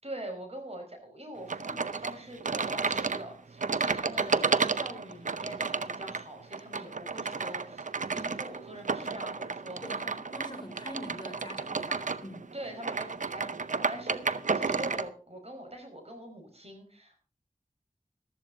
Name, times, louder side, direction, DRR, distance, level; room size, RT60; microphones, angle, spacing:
voice 1, 0.0-10.0 12.5-17.2, right 1 dB, 50° right, 4 dB, 4.9 m, -44 dB
sound 1, 1.5-15.1, right 4 dB, 70° right, 0.7 m, -32 dB
voice 2, 9.8-12.4, equal, 35° left, 4 dB, 3.5 m, -44 dB
14.0 x 13.5 x 3.8 m, 0.39 s
wide cardioid pair, 45°, 13 cm